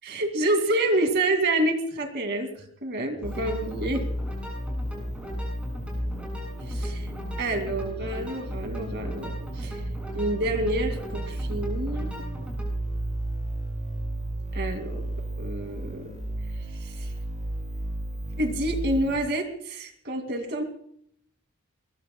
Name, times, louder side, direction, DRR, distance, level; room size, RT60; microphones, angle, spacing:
voice 1, 0.0-4.0 6.7-7.1 7.4-9.8 10.1-12.1 14.5-15.1 15.4-16.1 16.8-17.1 18.4-20.6, right 1 dB, 55° right, 6 dB, 2.5 m, -28 dB
sound 1, 3.1-12.7, equal, 5° right, 7.8 m, -41 dB
sound 2, 3.2-19.2, right 1 dB, 35° right, 7.4 m, -33 dB
23.0 x 21.5 x 2.3 m, 0.66 s
head